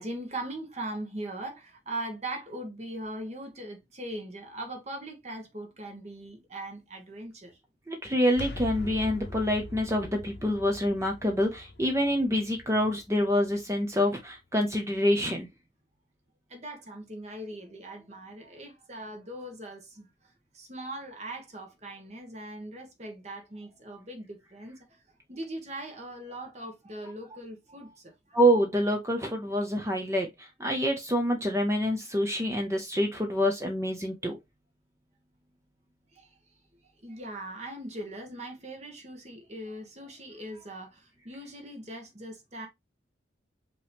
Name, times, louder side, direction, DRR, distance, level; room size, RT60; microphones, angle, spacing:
voice 1, 0.0-7.6 16.5-20.1 20.5-24.8 25.3-28.4 36.1-36.3 37.0-42.7, right 1 dB, 35° right, 1.4 m, -40 dB
voice 2, 7.9-15.5 28.3-34.4, equal, 15° right, 0.7 m, -26 dB
sound 1, 8.3-14.0, left 2 dB, 60° left, 0.7 m, -42 dB
5.1 x 2.9 x 3.5 m
head